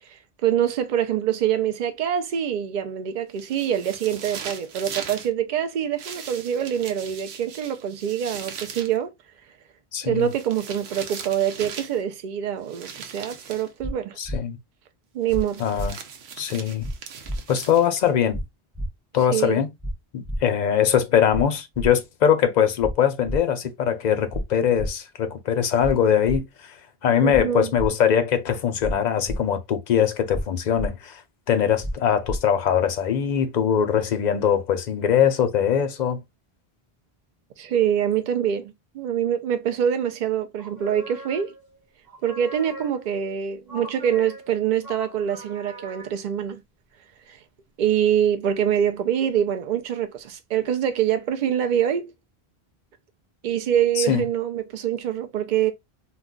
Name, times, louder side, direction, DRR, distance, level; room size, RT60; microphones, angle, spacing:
voice 1, 0.4-9.1 10.0-14.2 15.1-15.7 19.3-19.6 27.2-27.7 37.6-41.5 42.2-46.6 47.3-47.4 47.8-52.1 53.4-55.7, right 9 dB, 55° right, 0.6 m, -25 dB
sound 1, 3.4-5.3 6.0-9.0 10.2-12.0 12.7-13.7 15.3-18.1, right 6 dB, 85° right, 0.9 m, -39 dB
voice 2, 9.9-10.3 14.2-14.6 15.6-15.9 16.4-16.9 17.5-18.4 19.1-19.7 20.1-26.5 27.0-31.2 31.5-36.2 54.0-54.2, left 8 dB, 55° left, 0.6 m, -22 dB
sound 2, 13.8-13.9 14.2-14.4 15.3-15.4 15.7-15.9 16.8-16.9 17.2-17.4 18.3-18.4 18.7-18.9 19.8-19.9 20.2-20.4 21.3-21.4 21.7-21.9 22.8-22.9 23.2-23.4 24.3-24.4 24.7-24.9 25.8-25.9 26.2-26.4 27.3-27.4 27.7-27.9 28.8-28.9 29.2-29.4 30.3-30.4 30.7-30.9 31.8-31.9 32.2-32.4, equal, 5° right, 0.4 m, -29 dB
sound 3, 40.6-41.8 42.1-43.2 43.7-46.2, equal, 25° right, 0.8 m, -41 dB
2.3 x 2.2 x 3.6 m
omnidirectional pair, 1.1 m